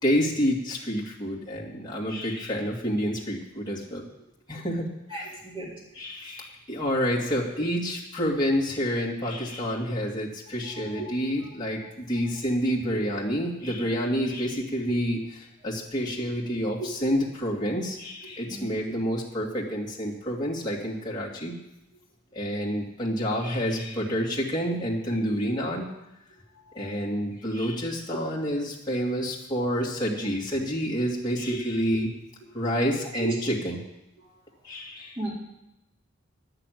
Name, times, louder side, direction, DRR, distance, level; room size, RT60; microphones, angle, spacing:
voice 1, 0.0-4.0 4.5-5.2 6.0-15.2 15.6-21.6 22.3-25.9 26.7-32.1 32.5-33.8 34.6-35.2, equal, 20° left, -4 dB, 2.3 m, -28 dB
voice 2, 5.1-5.7 10.6-11.2 12.9-13.0 16.8-16.9 18.5-18.7 26.5-27.0 29.6-29.8 31.5-31.6 33.1-33.3 34.2-34.3 35.2-35.3, right 3 dB, 25° right, -5 dB, 3.7 m, -36 dB
11.0 x 6.7 x 9.3 m, 0.89 s
head